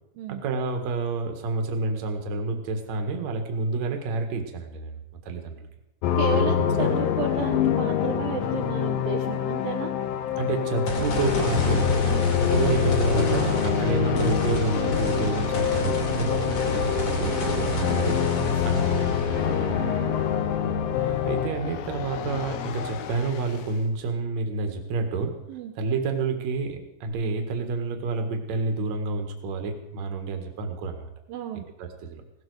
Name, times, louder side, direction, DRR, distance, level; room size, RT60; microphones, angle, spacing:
voice 1, 0.4-5.7 6.3-7.0 10.4-12.0 12.5-18.2 18.6-19.5 20.6-25.4 25.7-31.1 31.8-32.2, right 3 dB, 55° right, 5 dB, 2.6 m, -29 dB
sound 1, 6.0-21.5, left 10 dB, 70° left, 2.5 m, -26 dB
voice 2, 6.1-10.0 12.0-12.3 19.4-20.2 25.5-25.7 31.3-31.7, right 8 dB, 75° right, 3 dB, 2.6 m, -33 dB
sound 2, 10.9-23.2 23.6-23.7 27.1-27.2, left 1 dB, 45° left, 3.7 m, -29 dB
sound 3, 18.5-23.9, left 9 dB, 85° left, 2.9 m, -38 dB
17.5 x 14.0 x 4.9 m, 0.87 s
omnidirectional pair, 4.5 m